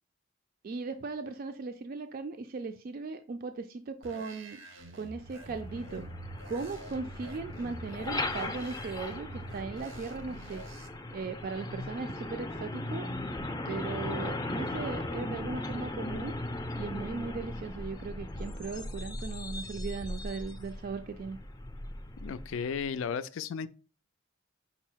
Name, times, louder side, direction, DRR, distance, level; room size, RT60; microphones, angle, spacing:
voice 1, 0.6-4.6 4.9-6.1 6.5-10.6 11.1-13.1 13.7-16.4 16.8-21.4, right 4 dB, 50° right, 0.4 m, -38 dB
sound 1, 4.0-10.9, right 2 dB, 85° right, 0.8 m, -47 dB
Truck, 5.2-22.9, left 2 dB, 20° left, 0.5 m, -38 dB
voice 2, 22.2-23.7, left 6 dB, 90° left, 0.4 m, -34 dB
5.5 x 2.0 x 4.5 m
head